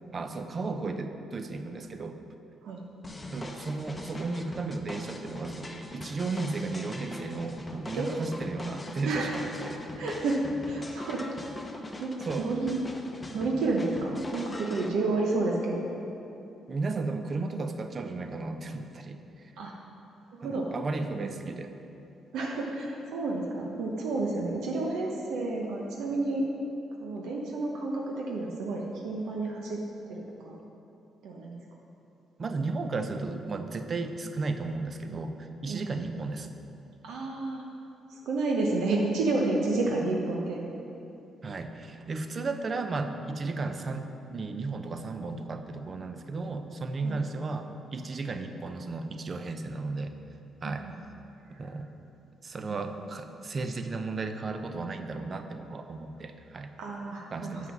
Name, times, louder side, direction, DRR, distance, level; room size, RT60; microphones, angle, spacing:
voice 1, 0.1-2.2 3.3-9.8 12.3-12.6 16.7-19.5 20.4-21.7 32.4-36.5 41.4-50.1 50.6-50.9 51.6-51.9 52.4-56.7 57.3-57.7, right 3 dB, 40° right, 7 dB, 0.6 m, -34 dB
sound 1, 3.0-14.9, left 1 dB, 20° left, 0.7 m, -41 dB
voice 2, 9.0-9.4 10.0-11.7 12.0-12.8 13.3-15.8 19.6-19.7 20.3-20.7 22.3-26.5 27.0-29.8 30.1-30.6 31.2-31.6 35.7-35.9 37.0-37.6 38.1-40.6 47.0-47.2 50.6-50.9 51.5-51.7 52.7-52.8 56.8-57.6, right 2 dB, 85° right, -1 dB, 0.9 m, -30 dB
7.8 x 5.9 x 5.9 m, 2.9 s
cardioid pair, 90°, 0 cm